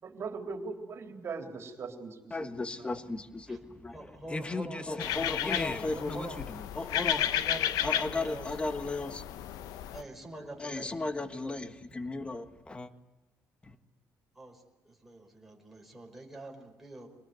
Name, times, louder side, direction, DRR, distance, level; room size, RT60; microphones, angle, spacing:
voice 1, 0.0-2.5, right 4 dB, 45° right, 4 dB, 3.7 m, -40 dB
voice 2, 2.3-7.2 7.8-9.2 10.6-12.9 13.6-13.8, left 2 dB, 20° left, 10 dB, 1.5 m, -35 dB
voice 3, 3.9-5.3 5.9-6.4 7.1-8.5 9.9-11.6 11.9-12.0 14.3-17.1, right 1 dB, 5° right, 0 dB, 4.9 m, -45 dB
sound 1, 5.0-10.0, left 11 dB, 90° left, 1.0 m, -33 dB
25.5 x 19.5 x 9.5 m, 1.1 s
cardioid pair, 120°, 6 cm